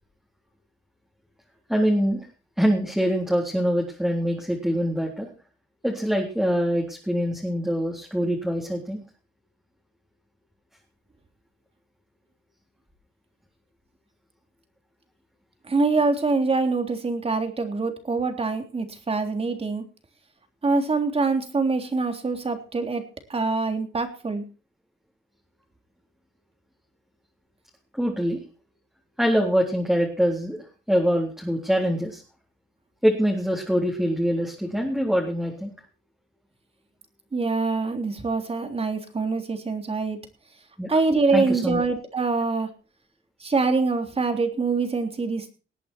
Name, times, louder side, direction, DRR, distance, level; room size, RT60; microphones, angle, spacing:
voice 1, 1.7-2.3 2.6-5.3 5.8-9.0 28.0-28.4 29.2-30.6 30.9-32.2 33.0-35.7 40.8-40.9 41.3-41.8, equal, ahead, -1 dB, 3.7 m, -24 dB
voice 2, 15.6-19.8 20.6-23.0 23.3-24.5 37.3-40.2 40.9-42.7 43.4-45.5, right 4 dB, 30° right, 6 dB, 3.4 m, -24 dB
20.0 x 8.5 x 4.6 m, 0.34 s
cardioid pair, 90°, 20 cm